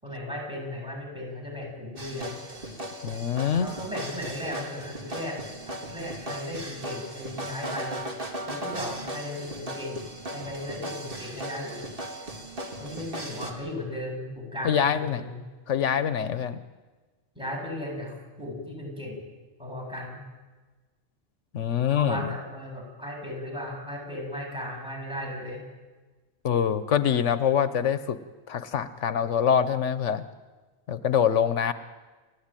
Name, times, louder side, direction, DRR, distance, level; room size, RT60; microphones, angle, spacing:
voice 1, 0.0-2.4 3.6-5.4 5.7-8.0 8.4-10.0 10.3-11.8 12.8-15.4 17.4-19.2 19.6-20.2 21.9-25.6, left 1 dB, 5° right, 0 dB, 7.7 m, -36 dB
sound 1, 2.0-13.5, right 1 dB, 50° right, 2.5 m, -37 dB
voice 2, 3.0-3.7 14.6-15.2 15.7-16.6 21.5-22.3 26.4-28.2 28.5-30.2 30.9-31.7, left 8 dB, 85° left, 12 dB, 1.2 m, -24 dB
29.0 x 13.5 x 9.0 m, 1.3 s
omnidirectional pair, 1.2 m